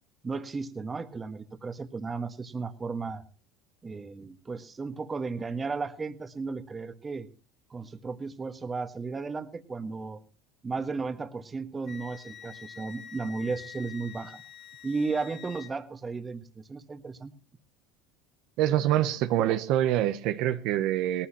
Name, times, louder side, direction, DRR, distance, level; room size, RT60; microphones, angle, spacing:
voice 1, 0.2-3.2 3.8-7.3 7.7-10.2 10.6-14.4 14.8-17.3, right 4 dB, 20° right, 1.4 m, -34 dB
Wind instrument woodwind instrument, 11.8-15.7, left 9 dB, 35° left, 2.1 m, -46 dB
voice 2, 18.6-21.3, right 12 dB, 65° right, 0.8 m, -25 dB
18.5 x 14.5 x 2.9 m
supercardioid pair, 100°, 0 cm